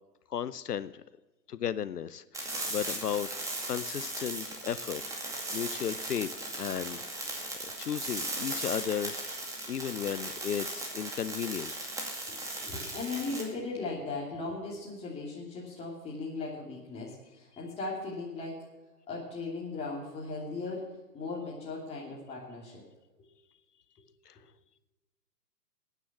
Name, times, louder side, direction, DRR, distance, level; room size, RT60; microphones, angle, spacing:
voice 1, 0.3-1.0 1.5-3.3 3.7-5.0 5.5-6.3 6.6-7.3 7.6-9.2 9.7-11.7 24.3-24.4, left 9 dB, 70° left, 17 dB, 0.8 m, -34 dB
sound 1, 2.3-13.4, right 2 dB, 5° right, 2.2 m, -37 dB
voice 2, 12.3-18.6 19.1-20.8 21.1-22.8, left 3 dB, 10° left, -5 dB, 2.8 m, -38 dB
15.5 x 9.4 x 7.1 m, 1.2 s
figure-of-eight pair, 135°, 49 cm